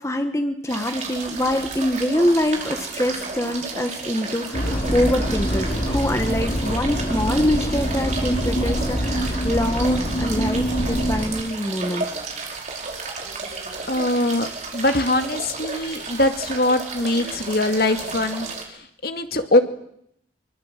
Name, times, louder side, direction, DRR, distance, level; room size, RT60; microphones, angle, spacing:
voice 1, 0.0-12.1, left 1 dB, 15° left, 7 dB, 1.5 m, -24 dB
sound 1, 0.7-18.6, right 3 dB, 40° right, 5.1 m, -33 dB
sound 2, 4.5-11.3, equal, 40° left, 6.1 m, -24 dB
voice 2, 13.9-14.5 14.7-18.5 18.7-19.6, left 1 dB, 55° left, 7 dB, 2.3 m, -22 dB
25.0 x 24.0 x 7.6 m, 0.73 s
head